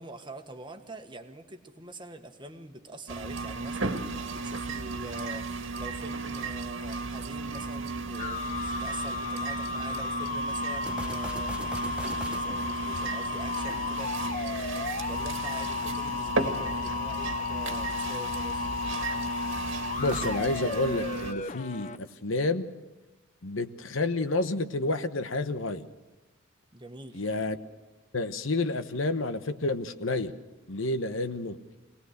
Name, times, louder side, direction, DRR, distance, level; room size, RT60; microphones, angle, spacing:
voice 1, 0.0-18.7 26.7-27.3, right 2 dB, 25° right, 6 dB, 1.4 m, -45 dB
sound 1, 3.1-21.3, right 3 dB, 65° right, 1.9 m, -34 dB
sound 2, 8.2-22.0, left 5 dB, 35° left, 0.6 m, -34 dB
sound 3, 10.8-14.3 20.0-22.1, right 1 dB, 5° right, 0.8 m, -43 dB
voice 2, 20.0-22.7 23.4-25.8 27.1-27.6 28.1-30.3 30.7-31.6, left 2 dB, 70° left, 10 dB, 1.1 m, -29 dB
24.0 x 18.5 x 6.7 m, 1.2 s
head